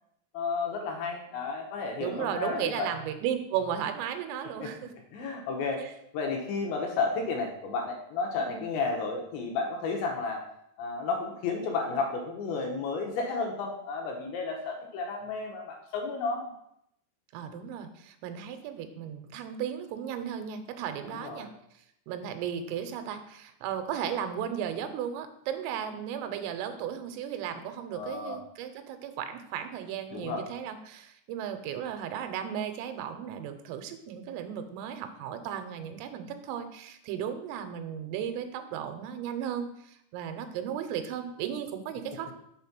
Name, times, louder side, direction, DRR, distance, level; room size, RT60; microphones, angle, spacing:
voice 1, 0.3-2.9 4.6-4.7 5.1-5.9 6.1-10.4 10.8-16.5 21.0-21.5 27.9-28.4 30.1-30.4, left 4 dB, 75° left, 1 dB, 2.8 m, -32 dB
voice 2, 2.0-4.9 8.4-8.6 17.3-21.5 22.1-42.3, right 9 dB, 90° right, 8 dB, 3.3 m, -35 dB
7.1 x 4.1 x 5.9 m, 0.77 s
omnidirectional pair, 5.7 m